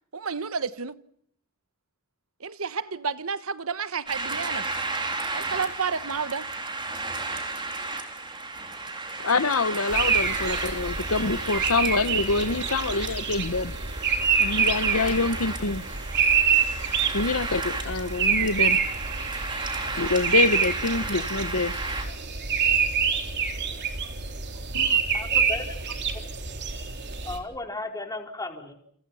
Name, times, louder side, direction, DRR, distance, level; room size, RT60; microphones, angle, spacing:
voice 1, 0.1-1.0 2.4-4.7 5.3-6.5, right 5 dB, 85° right, 1.2 m, -31 dB
sound 1, 4.1-22.0, right 3 dB, 25° right, 4.1 m, -34 dB
voice 2, 9.2-13.7 14.4-15.8 17.1-18.8 19.8-21.8 22.1-22.2 24.7-25.0, left 3 dB, 85° left, 1.2 m, -26 dB
sound 2, 9.9-27.4, right 6 dB, 55° right, 3.7 m, -26 dB
voice 3, 25.1-25.6 27.2-28.7, left 2 dB, 20° left, 4.4 m, -34 dB
30.0 x 28.5 x 5.7 m
head